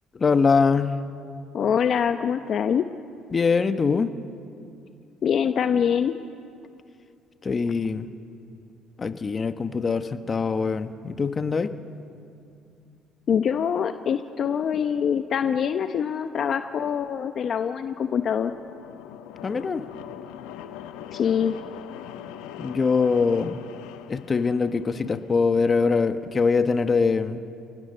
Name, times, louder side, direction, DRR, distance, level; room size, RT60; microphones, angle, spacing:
voice 1, 0.2-1.0 3.3-4.1 7.4-8.1 9.0-11.7 19.4-19.8 22.6-23.6 24.1-27.4, left 4 dB, 30° left, 9 dB, 1.2 m, -23 dB
voice 2, 1.5-2.8 5.2-6.1 13.3-18.5 21.1-21.6, left 7 dB, 50° left, 8 dB, 0.8 m, -24 dB
sound 1, 17.8-25.5, left 10 dB, 90° left, 1.1 m, -42 dB
29.0 x 19.0 x 6.8 m, 2.4 s
cardioid pair, 90°, 0 cm